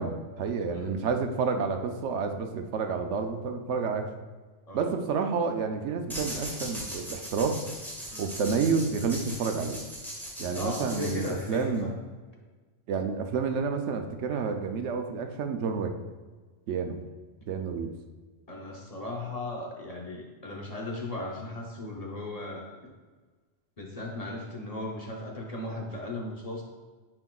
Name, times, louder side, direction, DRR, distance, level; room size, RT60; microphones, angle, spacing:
voice 1, 0.0-4.1 4.7-7.6 8.2-9.8 10.4-11.9 12.9-15.9 16.7-17.0 17.5-17.9, right 5 dB, 75° right, 5 dB, 0.9 m, -29 dB
voice 2, 0.7-1.0 4.7-4.9 8.1-8.3 10.5-11.9 18.5-22.7 23.8-26.6, left 2 dB, 35° left, -1 dB, 0.9 m, -37 dB
sound 1, 6.1-11.8, equal, ahead, 1.5 m, -39 dB
9.7 x 4.4 x 2.3 m, 1.4 s
omnidirectional pair, 1.2 m